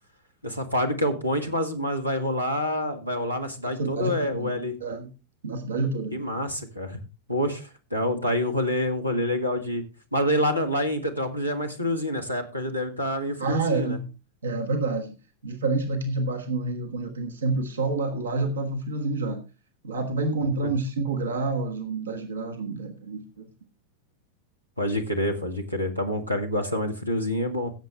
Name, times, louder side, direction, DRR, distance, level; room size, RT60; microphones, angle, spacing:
voice 1, 0.4-4.7 6.1-7.0 7.3-9.8 10.1-14.0 20.6-20.7 24.8-27.7, left 1 dB, 90° right, 4 dB, 1.7 m, -27 dB
voice 2, 3.8-4.5 4.8-5.1 5.4-6.2 13.4-14.0 14.4-15.1 15.4-19.4 19.8-23.4, right 3 dB, 70° right, 5 dB, 1.3 m, -28 dB
17.0 x 7.5 x 3.3 m, 0.30 s
figure-of-eight pair, 90°, 0 cm